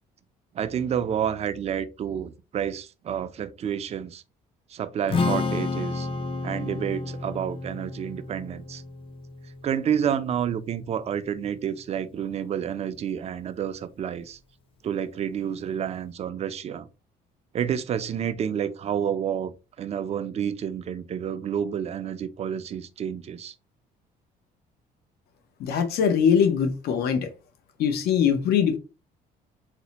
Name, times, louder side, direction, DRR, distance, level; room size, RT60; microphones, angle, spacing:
voice 1, 0.5-4.2 4.7-6.1 6.4-8.8 9.6-14.4 14.8-16.9 17.5-19.5 19.8-23.5, right 8 dB, 40° right, 0.4 m, -29 dB
Strum, 5.1-11.4, left 3 dB, 30° left, 0.5 m, -31 dB
voice 2, 25.6-27.3 27.8-28.8, left 7 dB, 70° left, 0.7 m, -22 dB
4.2 x 2.1 x 2.8 m
cardioid pair, 110°, 17 cm